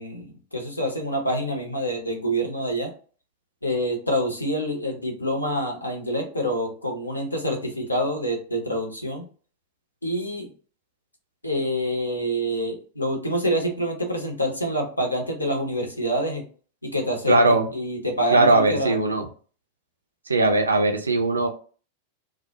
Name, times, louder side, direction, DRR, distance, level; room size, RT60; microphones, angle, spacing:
voice 1, 0.0-2.9 3.6-9.3 10.0-10.5 11.4-16.4 16.8-18.9, equal, 85° left, 2 dB, 0.6 m, -27 dB
voice 2, 17.3-17.7 18.3-19.3 20.3-21.5, right 2 dB, 80° right, 4 dB, 0.4 m, -19 dB
2.1 x 2.0 x 2.8 m, 0.40 s
figure-of-eight pair, 90°, 0 cm